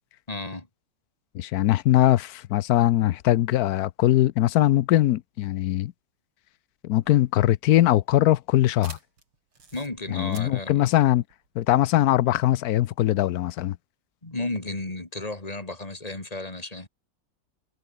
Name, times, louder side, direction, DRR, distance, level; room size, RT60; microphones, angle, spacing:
voice 1, 0.3-0.7 8.9-9.0 9.7-10.8 14.2-16.9, left 2 dB, 15° left, 3.0 m, -33 dB
voice 2, 1.3-5.9 6.8-9.0 10.1-11.2 11.6-13.8, left 14 dB, 90° left, 0.8 m, -21 dB
sound 1, 6.9-12.1, right 4 dB, 85° right, 5.0 m, -50 dB
omnidirectional pair, 2.3 m